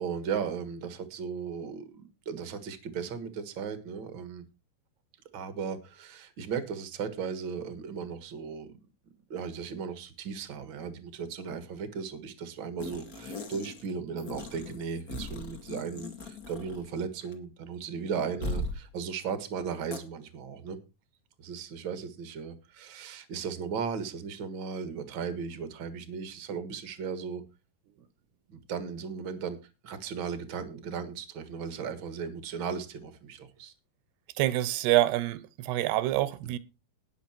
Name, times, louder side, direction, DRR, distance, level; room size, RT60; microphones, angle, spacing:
voice 1, 0.0-1.9 2.2-4.4 5.3-8.7 9.3-20.8 21.4-27.4 28.5-29.6 29.8-33.7, right 6 dB, 60° right, 1.2 m, -36 dB
sound 1, 12.8-13.9 14.2-17.0 17.2-17.3 18.4-18.8 19.9-20.0, left 1 dB, 40° left, 1.2 m, -38 dB
voice 2, 34.4-36.6, right 15 dB, 85° right, 2.9 m, -26 dB
19.5 x 6.7 x 4.4 m
omnidirectional pair, 4.7 m